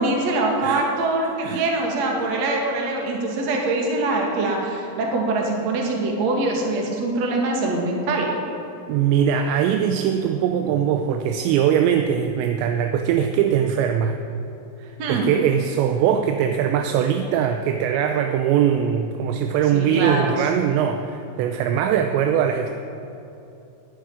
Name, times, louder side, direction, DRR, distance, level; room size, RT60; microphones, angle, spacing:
voice 1, 0.0-8.3 15.0-15.2 19.7-20.4, right 2 dB, 45° right, 0 dB, 2.4 m, -23 dB
voice 2, 8.9-14.2 14.8-22.7, right 8 dB, 80° right, 6 dB, 2.7 m, -21 dB
11.0 x 10.5 x 9.6 m, 2.9 s
omnidirectional pair, 5.5 m